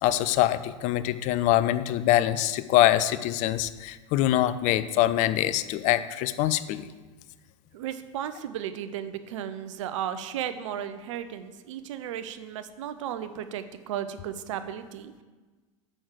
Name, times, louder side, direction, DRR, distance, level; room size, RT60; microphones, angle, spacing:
voice 1, 0.0-6.9, left 13 dB, 45° left, 13 dB, 0.5 m, -24 dB
voice 2, 7.7-15.2, right 10 dB, 70° right, 11 dB, 0.7 m, -35 dB
6.4 x 5.9 x 6.6 m, 1.3 s
hypercardioid pair, 85°, 17 cm